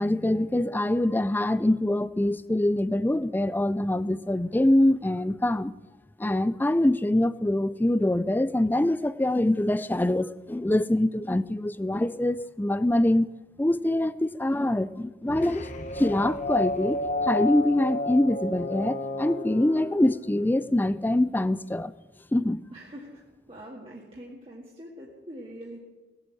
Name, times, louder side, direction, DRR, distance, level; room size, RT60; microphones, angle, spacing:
voice 1, 0.0-5.7 6.2-13.3 13.6-15.7 16.0-21.9 22.3-22.6, left 1 dB, 10° left, 0.4 m, -24 dB
sound 1, 15.3-20.8, left 2 dB, 45° left, 1.2 m, -32 dB
voice 2, 22.7-23.2 23.5-25.8, equal, 35° right, 2.1 m, -43 dB
17.5 x 7.8 x 9.0 m
head